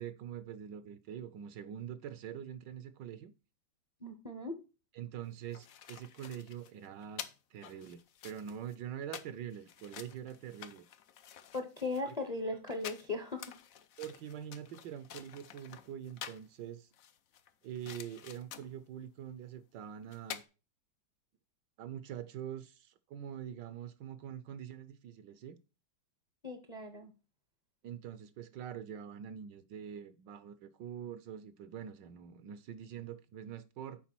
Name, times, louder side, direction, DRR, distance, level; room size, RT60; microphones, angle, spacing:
voice 1, 0.0-3.3 4.9-7.2 7.5-10.8 12.0-12.1 14.0-16.9 17.6-20.4 21.8-25.6 27.8-34.0, right 9 dB, 70° right, 1.2 m, -44 dB
voice 2, 4.0-4.6 11.5-13.5 26.4-27.1, left 3 dB, 30° left, 0.7 m, -38 dB
sound 1, 5.2-16.5 16.9-18.8 19.8-19.9 20.1-20.5, left 9 dB, 70° left, 0.8 m, -49 dB
7.2 x 4.8 x 5.9 m
omnidirectional pair, 2.1 m